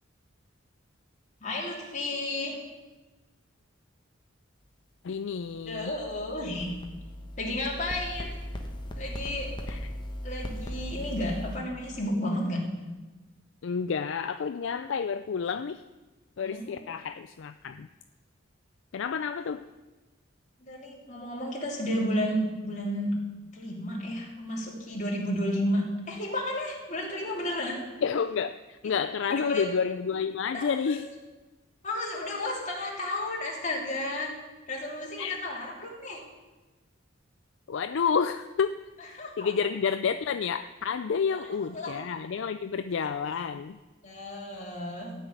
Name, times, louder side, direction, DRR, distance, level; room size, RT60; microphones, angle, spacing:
voice 1, 1.4-2.6 5.6-6.8 7.4-8.3 8.9-9.5 10.2-12.6 16.4-16.9 20.6-23.1 23.5-27.8 28.8-28.9 29.3-29.7 30.5-31.0 31.8-34.3 34.7-36.2 39.0-39.5 41.3-42.0 44.0-45.1, left 1 dB, 40° left, -2 dB, 3.2 m, -32 dB
voice 2, 5.0-5.9 9.7-9.8 13.6-15.8 16.4-17.9 18.9-19.6 28.0-31.1 35.2-35.4 37.7-38.8 39.4-43.8, left 6 dB, 65° left, 10 dB, 0.4 m, -30 dB
sound 1, 5.6-11.6, equal, 25° left, 1.3 m, -38 dB
13.5 x 6.1 x 9.4 m, 1.2 s
head